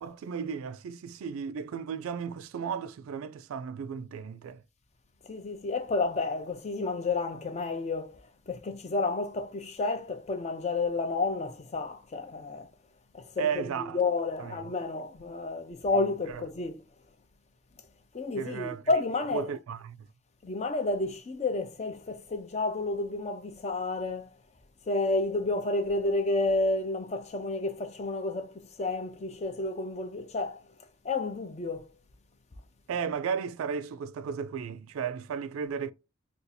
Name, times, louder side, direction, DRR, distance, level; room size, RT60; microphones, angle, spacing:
voice 1, 0.0-4.6 13.4-14.0 14.4-14.6 16.3-16.4 18.4-18.8 19.3-20.1 32.9-35.9, right 6 dB, 80° right, 0.3 m, -34 dB
voice 2, 5.3-8.2 8.5-12.7 13.1-13.6 13.9-16.8 18.1-19.5 20.4-24.3 24.9-30.6 31.0-31.9, left 3 dB, 30° left, 0.4 m, -30 dB
2.6 x 2.3 x 4.1 m
head